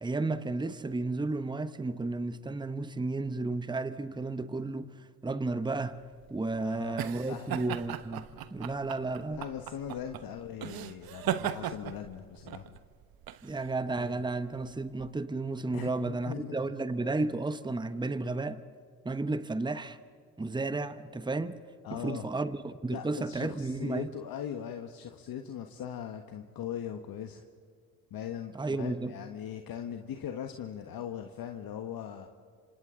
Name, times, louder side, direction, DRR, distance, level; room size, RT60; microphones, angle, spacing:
voice 1, 0.0-6.0 6.3-8.2 8.5-9.4 13.4-18.6 19.0-20.0 20.4-21.6 21.9-24.1 28.5-29.1, right 3 dB, 10° right, 1.0 m, -33 dB
sound 1, 5.9-15.1, right 10 dB, 55° right, 1.1 m, -38 dB
voice 2, 6.6-7.0 7.3-7.6 9.3-12.7 15.7-16.6 21.8-22.2 22.9-27.4 28.1-32.3, left 9 dB, 55° left, 1.4 m, -40 dB
27.0 x 26.0 x 3.9 m
hypercardioid pair, 60°, 43 cm